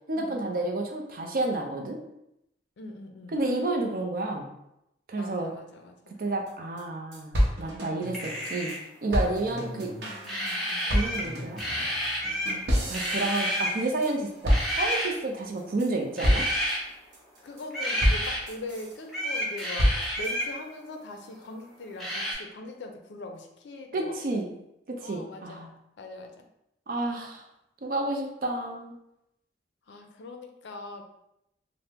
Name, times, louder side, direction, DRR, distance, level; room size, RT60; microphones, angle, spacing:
voice 1, 0.1-2.0 3.3-4.5 5.1-5.5 6.2-7.3 7.6-8.7 9.0-9.9 10.9-11.6 12.9-16.5 23.9-24.5 24.9-25.7 26.9-27.4 27.8-28.9, right 2 dB, 50° right, 2 dB, 0.4 m, -30 dB
voice 2, 2.8-3.4 5.2-6.2 9.6-10.9 17.4-24.2 25.0-25.6 26.0-26.4 29.9-31.0, left 2 dB, 80° left, 4 dB, 0.4 m, -42 dB
sound 1, 6.5-6.6 6.8-6.9 7.1-8.8 9.1-14.1 14.4-15.2 15.6-15.9 16.2-16.7 17.1-17.6 18.0-18.9 19.4-20.3, equal, 70° right, 0.7 m, -28 dB
sound 2, 8.1-8.9 10.2-11.3 11.6-12.6 12.9-13.8 14.5-15.1 16.2-16.8 17.7-18.4 19.1-20.5 22.0-22.3, equal, ahead, 0.6 m, -30 dB
2.8 x 2.0 x 3.4 m, 0.83 s
head